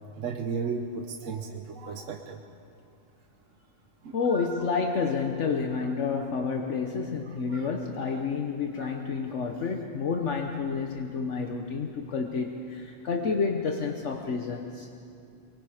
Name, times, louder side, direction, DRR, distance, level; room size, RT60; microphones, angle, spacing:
voice 1, 0.2-2.4 4.0-4.6 7.3-7.7 8.1-8.2 8.8-8.9, right 5 dB, 85° right, 4 dB, 1.3 m, -35 dB
voice 2, 4.1-14.9, left 5 dB, 70° left, 3 dB, 1.3 m, -29 dB
24.0 x 22.5 x 5.0 m, 2.5 s
omnidirectional pair, 1.3 m